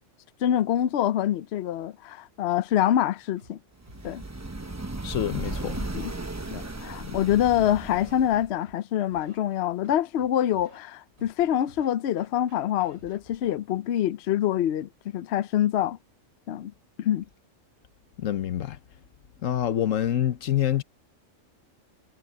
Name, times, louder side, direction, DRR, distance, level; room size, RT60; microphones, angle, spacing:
voice 1, 0.4-3.6 4.0-4.2 5.8-6.1 6.5-16.0 16.5-16.7 17.0-17.2, left 11 dB, 65° left, 0.8 m, -25 dB
Scratching (performance technique), 3.4-3.5 3.9-4.1 4.7-5.6 6.0-6.2 6.5-6.8 7.2-8.1 8.6-8.7 9.1-9.4 9.8-10.8 11.2-11.3 11.7-13.5, right 1 dB, 60° right, 7.3 m, -53 dB
sound 1, 3.8-8.6, right 2 dB, 15° right, 0.8 m, -36 dB
voice 2, 5.0-5.8 7.0-7.1 18.2-18.8 19.4-20.8, left 11 dB, 85° left, 1.3 m, -26 dB
omnidirectional pair, 1.3 m